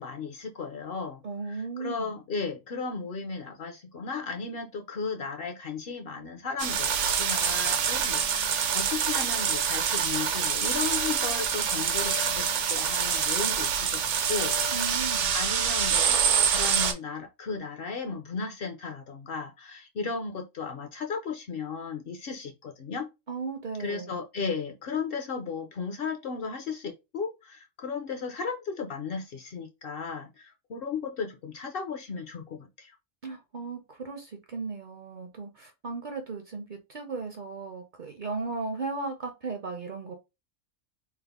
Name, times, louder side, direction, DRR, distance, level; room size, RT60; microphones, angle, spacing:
voice 1, 0.0-15.0 15.3-23.1 23.8-32.9, left 5 dB, 60° left, 0.7 m, -35 dB
voice 2, 1.2-2.1 14.7-15.3 23.3-24.1 33.2-40.1, right 4 dB, 55° right, 0.6 m, -36 dB
sound 1, 6.6-16.9, right 7 dB, 75° right, 0.9 m, -26 dB
3.4 x 2.0 x 3.5 m
omnidirectional pair, 1.3 m